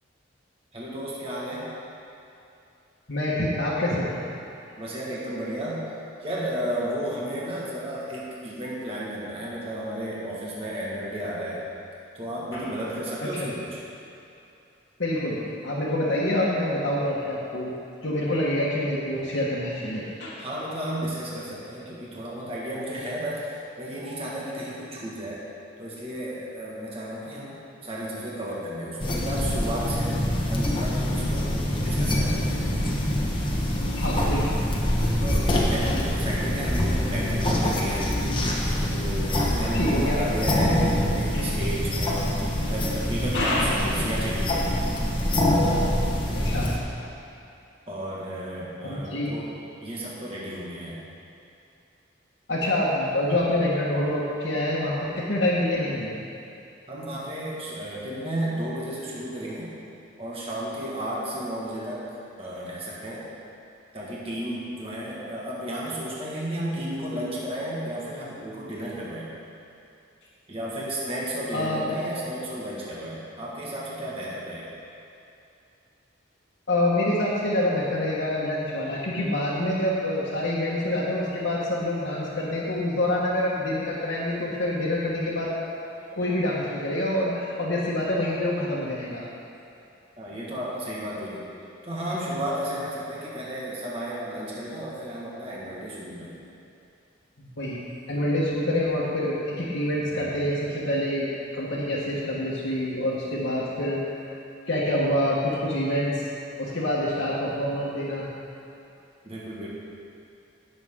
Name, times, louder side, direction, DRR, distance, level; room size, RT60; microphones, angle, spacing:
voice 1, 0.7-1.7 4.8-5.9 6.2-11.7 12.1-13.8 20.4-25.5 25.8-30.2 30.5-31.5 31.8-32.6 35.2-38.2 38.9-44.8 47.9-49.5 49.8-51.1 56.9-59.7 60.2-62.1 62.4-63.3 63.9-69.3 70.5-74.8 90.2-91.5 91.8-96.4 109.2-109.7, right 1 dB, 30° right, -6 dB, 1.7 m, -33 dB
voice 2, 3.1-4.1 12.5-12.6 13.3-13.5 15.0-17.7 18.0-20.4 33.9-34.5 39.7-40.2 41.3-41.5 43.3-43.8 46.3-46.7 48.8-49.3 52.5-56.1 71.5-71.9 76.7-85.5 86.1-89.2 97.4-97.8 98.1-101.3 101.5-104.0 104.7-106.2 106.6-108.3, left 1 dB, 70° left, -9 dB, 1.5 m, -26 dB
sound 1, 29.0-46.8, left 1 dB, 25° left, 1.3 m, -25 dB
18.0 x 6.9 x 3.7 m, 2.7 s
head